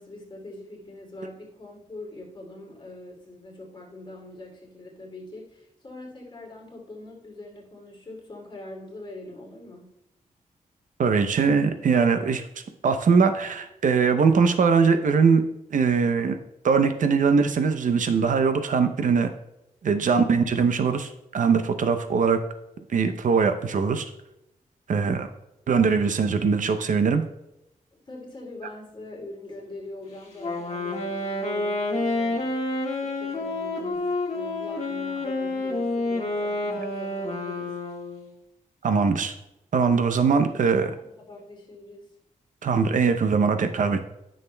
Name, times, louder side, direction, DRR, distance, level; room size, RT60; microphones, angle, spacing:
voice 1, 0.0-10.0 19.9-20.0 27.9-32.6 32.9-37.8 40.2-42.1, left 2 dB, 35° left, -2 dB, 2.7 m, -43 dB
voice 2, 11.0-12.4 12.8-15.4 15.7-16.4 16.6-19.3 19.8-22.4 22.9-24.0 24.9-25.3 25.7-27.2 38.8-39.3 39.7-40.9 42.6-44.1, right 5 dB, 70° right, 8 dB, 0.6 m, -21 dB
Wind instrument woodwind instrument, 30.4-38.3, left 2 dB, 55° left, 1.5 m, -29 dB
9.8 x 6.5 x 2.2 m, 0.88 s
cardioid pair, 65°, 14 cm